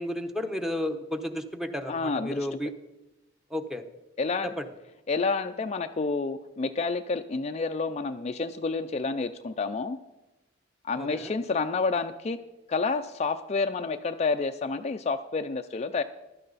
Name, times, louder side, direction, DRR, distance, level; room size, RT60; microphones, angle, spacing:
voice 1, 0.0-2.7 3.5-3.8 4.4-4.7 11.0-11.3, left 1 dB, ahead, 5 dB, 0.9 m, -32 dB
voice 2, 1.9-2.5 4.2-4.5 5.1-10.0 10.8-12.4 12.7-16.0, left 4 dB, 35° left, 8 dB, 0.4 m, -29 dB
15.5 x 12.0 x 4.1 m, 1.0 s
head